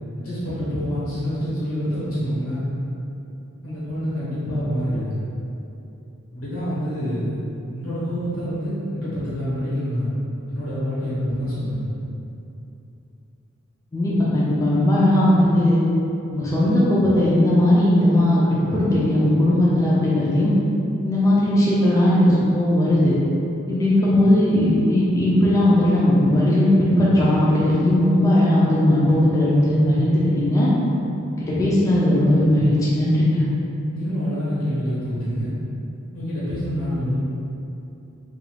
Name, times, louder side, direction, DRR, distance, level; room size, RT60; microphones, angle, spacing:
voice 1, 0.2-2.6 3.6-5.1 6.3-7.4 7.7-10.1 10.5-11.8 33.9-35.5 36.1-37.1, equal, 85° left, -11 dB, 1.1 m, -26 dB
voice 2, 13.9-15.8 16.3-18.4 18.7-20.5 21.0-23.1 23.7-30.7 31.3-33.4, left 1 dB, 15° left, -8 dB, 0.3 m, -18 dB
2.4 x 2.3 x 3.2 m, 2.8 s
head